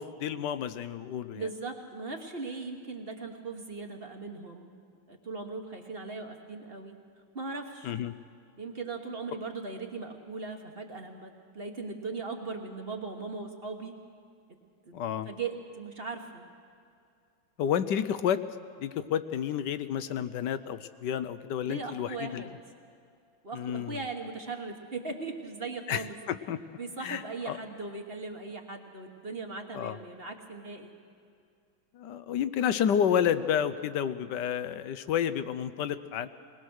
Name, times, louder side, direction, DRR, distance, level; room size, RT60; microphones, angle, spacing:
voice 1, 0.0-1.5 7.8-8.1 14.9-15.3 17.6-18.4 18.8-22.4 23.5-24.0 25.9-26.6 27.0-27.6 29.7-30.0 31.9-36.3, left 9 dB, 70° left, 13 dB, 1.1 m, -30 dB
voice 2, 1.3-4.8 5.1-6.9 7.3-7.9 8.6-13.9 14.5-14.6 14.8-15.0 15.2-16.5 21.6-22.5 23.4-26.2 26.8-30.9, right 3 dB, 35° right, 3 dB, 1.3 m, -39 dB
20.5 x 20.5 x 6.4 m, 2.4 s
omnidirectional pair, 2.2 m